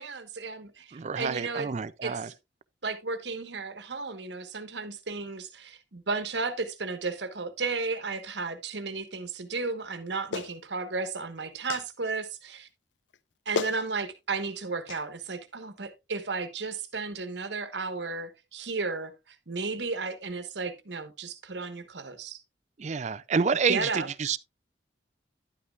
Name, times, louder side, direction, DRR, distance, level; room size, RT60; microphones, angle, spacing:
voice 1, 0.0-1.7 2.0-2.3 2.8-12.7 13.4-22.4 23.7-24.1, right 4 dB, 70° right, 1.3 m, -34 dB
voice 2, 0.9-2.3 22.8-23.9 24.2-24.4, right 5 dB, 40° right, 0.4 m, -28 dB
Clapping, 10.3-10.5 11.7-11.9 13.1-13.2 13.5-13.8 14.9-15.0, left 5 dB, 85° left, 0.5 m, -32 dB
11.0 x 8.6 x 2.4 m
head